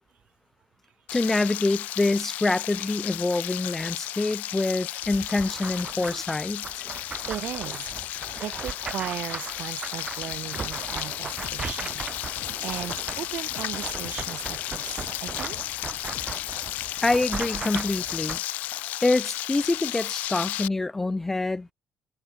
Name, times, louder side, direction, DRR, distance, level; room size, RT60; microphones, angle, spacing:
Frying (food), 1.1-20.7, left 15 dB, 80° left, 0.4 m, -34 dB
voice 1, 1.1-6.8 17.0-18.4 19.0-21.7, left 2 dB, 10° left, 0.4 m, -26 dB
sound 1, 5.0-18.4, right 5 dB, 25° right, 0.9 m, -38 dB
voice 2, 7.3-7.9 8.4-12.0 12.6-16.0, right 11 dB, 55° right, 0.6 m, -37 dB
sound 2, 11.4-16.5, left 12 dB, 60° left, 4.6 m, -49 dB
cardioid pair, 165°, 3 cm